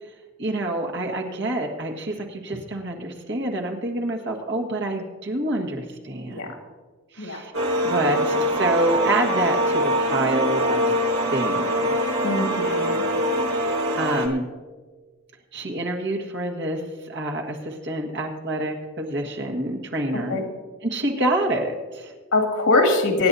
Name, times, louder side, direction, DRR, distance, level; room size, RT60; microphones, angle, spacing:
voice 1, 0.4-6.5 7.1-7.5 7.8-10.9 11.3-11.9 13.5-14.4 15.5-20.4 20.8-22.1, right 1 dB, 55° right, 1 dB, 1.6 m, -27 dB
sound 1, 7.5-14.3, equal, 75° right, 1.7 m, -23 dB
voice 2, 12.2-13.0 20.3-20.4 22.3-23.3, left 2 dB, 85° left, 2 dB, 2.3 m, -22 dB
24.5 x 9.7 x 2.8 m, 1.4 s
head